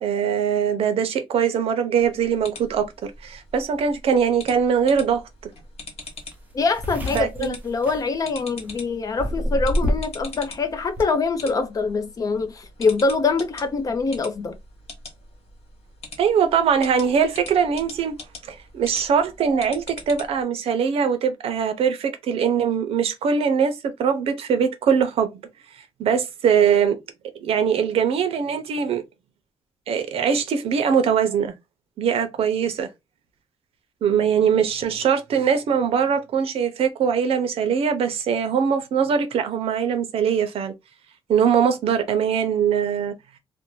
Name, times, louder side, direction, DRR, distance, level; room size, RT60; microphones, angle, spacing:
voice 1, 0.0-2.9 3.2-5.2 7.1-7.6 16.2-18.1 18.5-25.4 26.0-27.0 27.4-29.0 29.9-31.5 32.0-32.9 34.0-40.7 41.3-43.1, right 7 dB, 70° right, 0.6 m, -21 dB
sound 1, 2.0-20.4, left 3 dB, 85° left, 1.2 m, -43 dB
sound 2, 6.0-6.1 6.3-8.7 9.2-10.2 10.5-11.0, left 1 dB, 15° right, 0.6 m, -26 dB
voice 2, 6.5-14.6, left 4 dB, 35° left, 0.4 m, -24 dB
2.6 x 2.1 x 2.9 m
wide cardioid pair, 155°, 10 cm